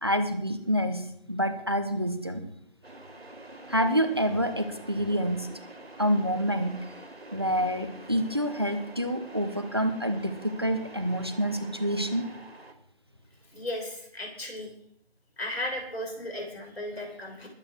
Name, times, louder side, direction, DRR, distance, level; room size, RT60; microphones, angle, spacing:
voice 1, 0.0-2.4 3.7-5.5 6.0-6.8 7.3-12.3, equal, 25° right, 9 dB, 1.0 m, -27 dB
sound 1, 2.8-12.7, right 2 dB, 90° right, 4.1 m, -46 dB
voice 2, 13.5-14.7 15.4-17.5, left 1 dB, 80° left, 1 dB, 6.3 m, -35 dB
21.0 x 9.0 x 4.6 m, 0.69 s
figure-of-eight pair, 175°, 31 cm